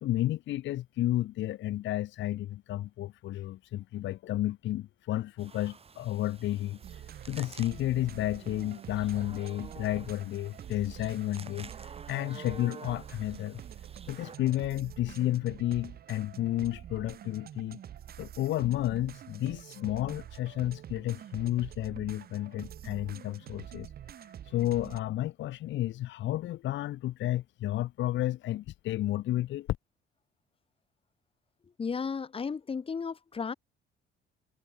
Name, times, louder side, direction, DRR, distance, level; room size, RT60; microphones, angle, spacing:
voice 1, 0.0-6.8 7.2-13.6 14.1-17.8 18.2-23.9 24.2-29.7, left 14 dB, 65° left, 0.9 m, -32 dB
sound 1, 5.4-14.4, right 5 dB, 30° right, 4.8 m, -50 dB
sound 2, 6.8-25.0, right 10 dB, 50° right, 1.7 m, -47 dB
voice 2, 31.8-33.5, left 5 dB, 25° left, 2.9 m, -34 dB
cardioid pair, 150°, 20 cm